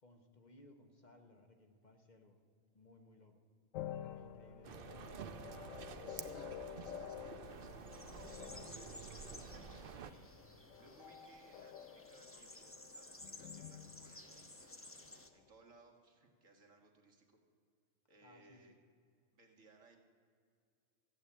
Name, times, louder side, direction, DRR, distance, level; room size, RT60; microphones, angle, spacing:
voice 1, 0.0-2.4 2.7-3.4 3.9-5.2 18.2-18.7, left 2 dB, 35° left, 4 dB, 1.1 m, -62 dB
sound 1, 3.7-15.2, left 10 dB, 85° left, 1.0 m, -50 dB
sound 2, 4.6-10.1, right 7 dB, 55° right, 0.8 m, -50 dB
voice 2, 6.0-14.6 15.3-17.4 18.1-18.7 19.3-20.0, right 3 dB, 80° right, 2 dB, 2.1 m, -64 dB
sound 3, 7.4-15.3, left 1 dB, 10° left, 0.8 m, -56 dB
14.5 x 8.3 x 8.5 m, 2.3 s
omnidirectional pair, 1.3 m